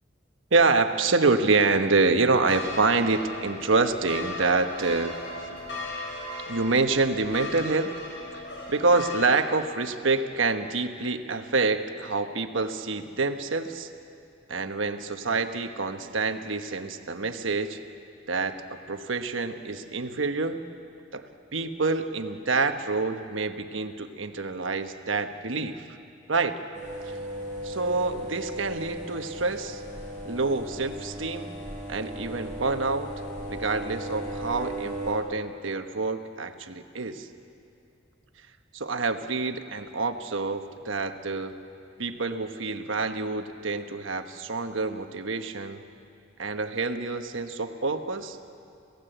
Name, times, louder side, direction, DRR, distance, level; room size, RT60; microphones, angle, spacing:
voice 1, 0.5-5.1 5.4-5.6 6.5-7.9 8.3-8.4 8.7-13.9 14.5-17.8 18.3-20.6 21.1-21.3 21.5-25.9 26.3-26.6 27.1-27.2 27.6-29.8 30.2-31.5 31.9-33.1 33.5-37.3 38.7-41.5 42.0-45.8 46.4-48.4, right 3 dB, 85° right, 7 dB, 1.2 m, -27 dB
sound 1, 2.4-9.3, left 2 dB, 60° left, 6.0 m, -37 dB
sound 2, 26.7-35.1, right 1 dB, 15° left, 7.7 m, -36 dB
27.0 x 17.5 x 8.0 m, 2.6 s
head